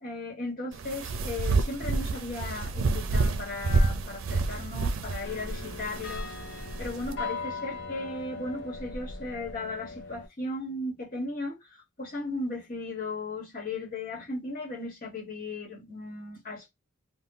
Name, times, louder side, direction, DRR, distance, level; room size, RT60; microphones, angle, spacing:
voice 1, 0.0-6.3 6.8-11.5 12.0-16.7, left 2 dB, 45° left, 1.2 m, -36 dB
sound 1, 0.7-7.1, right 3 dB, 85° right, 0.5 m, -29 dB
sound 2, 5.2-10.3, left 3 dB, 60° left, 0.6 m, -38 dB
2.7 x 2.3 x 3.7 m
head